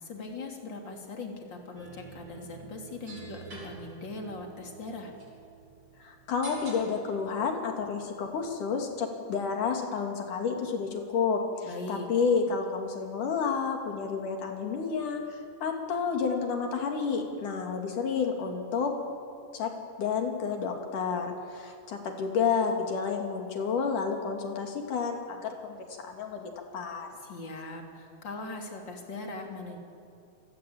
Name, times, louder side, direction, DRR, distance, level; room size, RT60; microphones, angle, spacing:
voice 1, 0.0-5.1 11.6-12.1 27.2-29.8, left 3 dB, 35° left, 2 dB, 3.6 m, -40 dB
sound 1, 1.8-9.0, right 3 dB, 35° right, 6.8 m, -49 dB
voice 2, 6.0-18.9 19.5-19.7 20.0-27.1, left 5 dB, 80° left, 3 dB, 4.1 m, -30 dB
28.5 x 18.0 x 8.7 m, 2.4 s
omnidirectional pair, 3.6 m